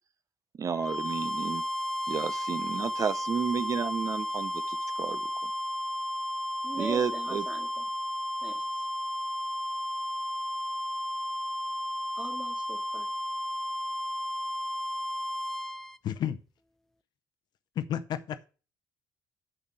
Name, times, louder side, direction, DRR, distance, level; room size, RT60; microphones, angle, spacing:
voice 1, 0.5-1.6 2.1-5.5 6.8-7.4, right 6 dB, 45° right, 0.7 m, -32 dB
sound 1, 0.7-16.0, equal, 5° left, 0.6 m, -33 dB
voice 2, 6.6-7.8 8.4-8.9 12.2-13.1, right 2 dB, 15° right, 2.1 m, -41 dB
voice 3, 16.0-16.4 17.8-18.5, left 10 dB, 70° left, 0.7 m, -32 dB
7.0 x 6.9 x 6.7 m
supercardioid pair, 65°, 8 cm